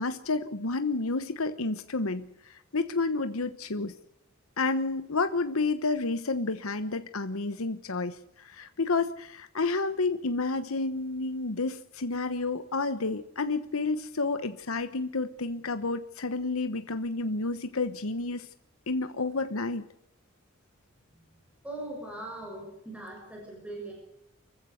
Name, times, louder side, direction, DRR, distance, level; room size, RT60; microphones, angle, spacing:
voice 1, 0.0-2.2 2.7-3.9 4.6-18.5 18.9-19.8, left 3 dB, 85° left, 10 dB, 1.1 m, -30 dB
voice 2, 21.6-23.9, right 1 dB, 5° right, -1 dB, 6.5 m, -40 dB
25.0 x 15.0 x 8.0 m, 0.82 s
head